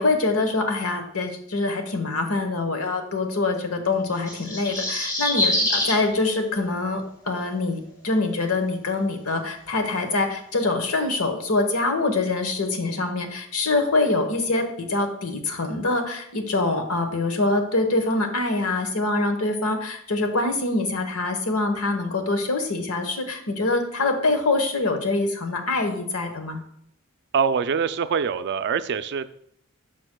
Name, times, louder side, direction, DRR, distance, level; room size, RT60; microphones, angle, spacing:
voice 1, 0.0-26.6, left 2 dB, 90° left, 6 dB, 1.1 m, -24 dB
sound 1, 4.1-6.0 7.4-7.5, left 1 dB, 20° left, 2.8 m, -24 dB
voice 2, 27.3-29.3, right 6 dB, 55° right, 12 dB, 0.4 m, -24 dB
11.0 x 6.0 x 2.2 m, 0.69 s
head